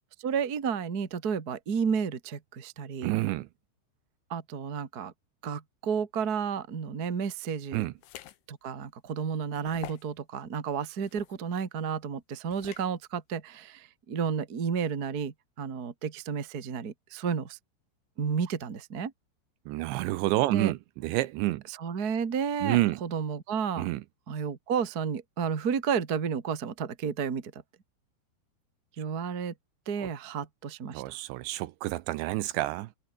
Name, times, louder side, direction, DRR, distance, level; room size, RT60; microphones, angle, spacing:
voice 1, 0.0-3.1 4.3-5.1 5.4-7.8 8.5-17.6 18.2-19.1 20.5-20.7 21.7-23.9 24.3-27.6 29.0-29.5 29.8-31.1, right 6 dB, 65° right, 0.9 m, -32 dB
voice 2, 3.0-3.5 7.7-7.9 19.7-21.6 22.6-23.0 23.8-24.0 30.0-30.1 30.9-32.9, right 17 dB, 80° right, 2.9 m, -29 dB
sound 1, 8.0-8.4 8.9-9.0 9.6-10.1 11.0-11.3 12.5-12.9, left 13 dB, 75° left, 3.9 m, -46 dB
omnidirectional pair, 5.6 m